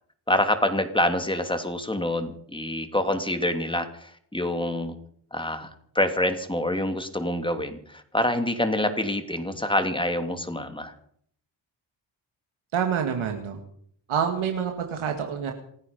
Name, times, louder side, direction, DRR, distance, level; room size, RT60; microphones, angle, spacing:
voice 1, 0.3-4.9 5.3-10.9, left 1 dB, 10° left, 7 dB, 2.8 m, -26 dB
voice 2, 12.7-13.6 14.1-15.5, right 7 dB, 75° right, 4 dB, 2.1 m, -27 dB
28.0 x 9.5 x 5.4 m, 0.65 s
supercardioid pair, 50°, 49 cm